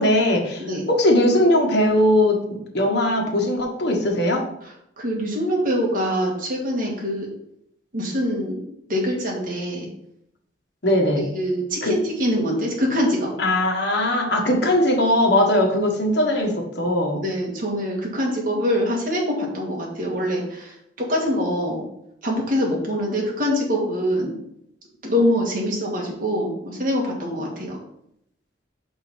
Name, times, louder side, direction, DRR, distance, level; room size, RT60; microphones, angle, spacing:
voice 1, 0.0-0.6 0.9-4.4 10.8-11.2 11.8-11.9 13.4-17.2, left 1 dB, 60° left, 0 dB, 1.5 m, -20 dB
voice 2, 4.6-7.3 7.9-8.6 8.9-9.9 11.3-13.3 17.2-21.8 22.2-24.3 25.0-27.8, equal, 50° right, -1 dB, 2.0 m, -24 dB
5.6 x 5.5 x 4.4 m, 0.76 s
head